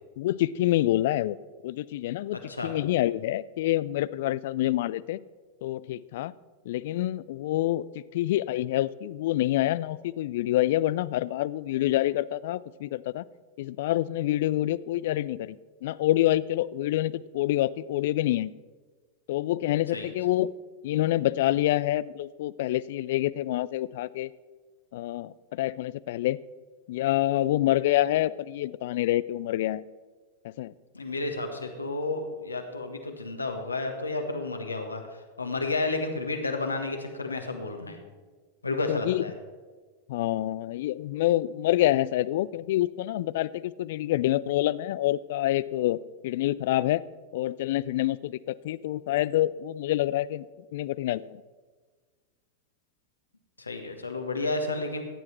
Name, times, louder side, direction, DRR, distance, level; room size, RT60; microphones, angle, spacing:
voice 1, 0.2-1.4 1.6-2.4 2.6-5.2 5.6-6.3 6.7-7.9 8.1-13.2 13.6-15.6 15.8-18.5 19.3-20.5 20.8-24.3 24.9-26.4 26.9-29.8 30.4-30.7 38.9-39.2 40.1-46.0 46.2-47.0 47.3-50.5 50.7-51.4, left 14 dB, 55° left, 19 dB, 0.3 m, -27 dB
voice 2, 30.9-35.0 35.4-38.0 38.6-39.3 53.6-55.0, left 3 dB, 80° left, 4 dB, 1.5 m, -31 dB
15.5 x 9.7 x 4.4 m, 1.4 s
figure-of-eight pair, 90°, 0 cm